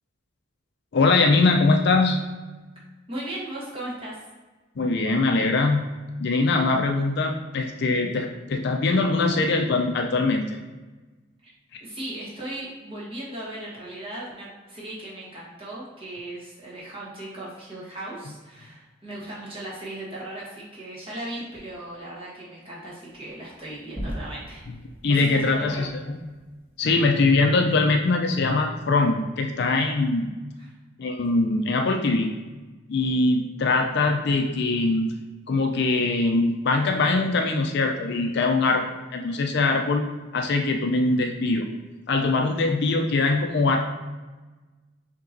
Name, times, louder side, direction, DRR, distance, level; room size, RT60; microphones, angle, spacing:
voice 1, 0.9-2.2 4.8-5.9 6.2-10.6 25.0-25.9 26.8-30.3 31.0-32.3 32.9-35.1 35.5-38.8 39.1-40.0 40.3-41.6 42.1-43.8, left 3 dB, 50° left, 3 dB, 0.4 m, -22 dB
voice 2, 3.1-4.2 11.8-24.7 25.0-25.8 30.6-30.7, right 1 dB, 25° right, -7 dB, 1.3 m, -37 dB
sound 1, 23.1-27.4, equal, 10° right, 0.5 m, -40 dB
5.3 x 2.9 x 2.6 m, 1.2 s
head